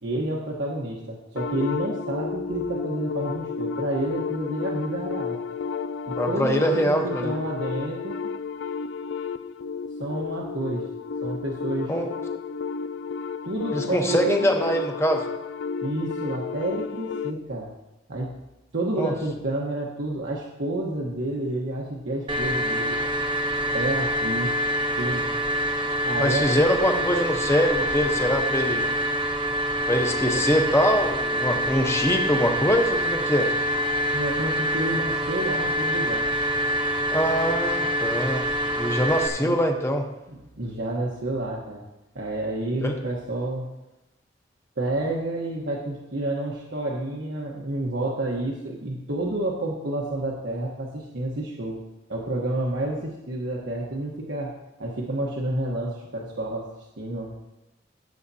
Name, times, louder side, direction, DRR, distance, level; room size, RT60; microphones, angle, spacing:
voice 1, 0.0-5.4 6.1-8.3 10.0-10.9 11.2-11.9 13.4-14.5 15.8-17.7 18.1-18.3 18.7-23.1 23.7-24.5 25.0-25.3 26.0-27.1 34.1-36.3 39.3-39.6 40.3-41.8 42.1-43.7 44.8-51.8 52.1-54.5 54.8-56.7 57.0-57.3, right 1 dB, 75° right, -3 dB, 1.2 m, -29 dB
sound 1, 1.4-17.4, left 5 dB, 85° left, 0.4 m, -32 dB
voice 2, 6.2-7.3 11.9-12.1 13.7-15.2 19.0-19.1 26.2-28.9 29.9-33.5 37.1-38.5 38.7-40.1 42.8-43.0, equal, 15° left, 3 dB, 1.0 m, -23 dB
sound 2, 22.3-39.3, equal, 25° right, 0.8 m, -26 dB
16.0 x 7.3 x 2.8 m, 0.97 s
head